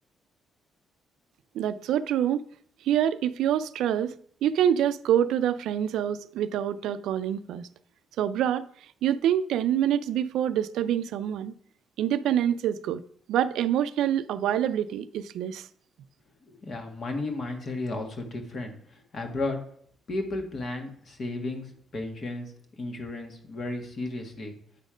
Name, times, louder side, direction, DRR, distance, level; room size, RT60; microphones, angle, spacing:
voice 1, 1.5-2.4 2.8-7.7 8.2-8.7 9.0-11.5 12.0-13.0 13.3-15.7, right 10 dB, 85° right, 0.4 m, -26 dB
voice 2, 16.4-19.6 20.1-22.5 22.8-24.5, left 2 dB, 50° left, 1.6 m, -34 dB
8.8 x 4.2 x 5.0 m
cardioid pair, 90°, 0 cm